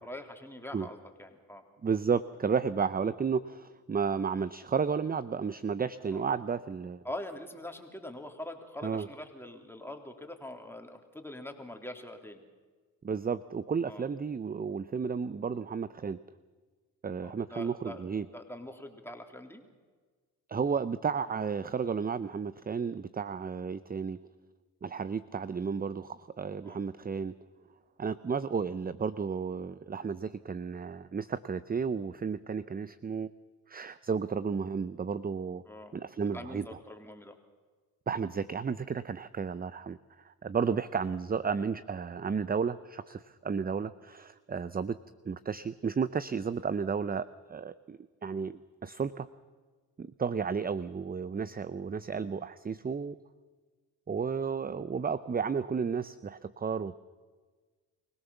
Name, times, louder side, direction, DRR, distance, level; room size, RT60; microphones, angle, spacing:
voice 1, 0.0-1.6 6.1-6.2 7.0-12.4 13.9-14.1 17.2-19.6 26.6-26.8 35.7-36.0 36.3-37.4 40.7-40.8, left 1 dB, 5° left, 4 dB, 3.3 m, -44 dB
voice 2, 1.8-7.0 8.8-9.1 13.0-16.2 17.0-18.2 20.5-24.2 24.8-27.3 28.0-33.3 33.7-35.6 35.9-36.6 38.1-40.0 40.2-45.0 45.3-49.3 50.0-53.2 54.1-57.0, right 6 dB, 20° right, 15 dB, 0.6 m, -32 dB
23.5 x 17.5 x 7.1 m, 1.4 s
supercardioid pair, 55°, 42 cm